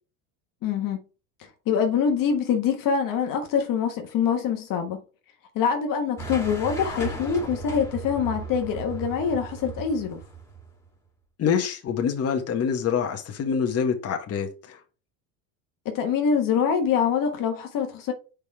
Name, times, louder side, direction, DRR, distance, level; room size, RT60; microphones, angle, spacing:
voice 1, 0.6-1.0 1.4-5.0 5.5-10.2 15.8-18.1, left 7 dB, 55° left, 1.4 m, -25 dB
sound 1, 6.2-10.9, right 4 dB, 5° left, 2.3 m, -36 dB
voice 2, 11.4-14.8, left 7 dB, 35° left, 1.5 m, -26 dB
5.3 x 5.2 x 4.7 m
supercardioid pair, 105°, 40 cm